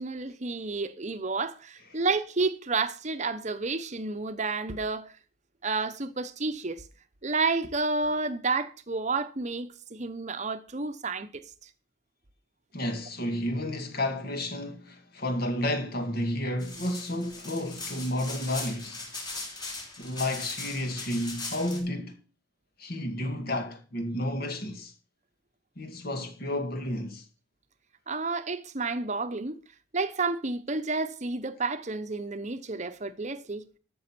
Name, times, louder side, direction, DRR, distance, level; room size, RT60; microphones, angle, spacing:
voice 1, 0.0-5.1 5.6-6.8 7.2-11.4 28.1-29.6 29.9-33.6, right 3 dB, 35° right, 0.9 m, -30 dB
voice 2, 12.7-19.1 20.0-22.2 22.8-24.9 25.8-27.3, left 1 dB, 50° left, 2.0 m, -31 dB
sound 1, 16.6-21.8, left 3 dB, 20° left, 3.7 m, -39 dB
13.0 x 6.3 x 6.0 m
head